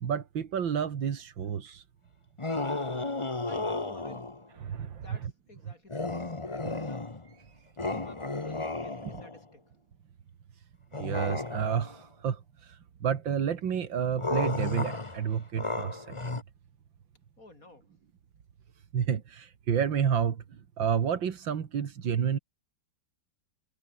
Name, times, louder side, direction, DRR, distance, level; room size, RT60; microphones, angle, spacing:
voice 1, 0.0-1.8 4.6-5.1 6.6-6.8 11.0-12.8 13.0-16.0 18.9-20.4 20.8-22.4, right 8 dB, 85° right, 2.4 m, -30 dB
sound 1, 2.4-4.5 5.9-7.3 7.8-9.4 10.9-12.0 14.2-16.4, left 2 dB, 15° left, 1.4 m, -33 dB
voice 2, 3.4-4.3 5.0-7.1 7.9-9.6 17.4-17.9, left 2 dB, 45° left, 5.4 m, -52 dB
omnidirectional pair, 2.0 m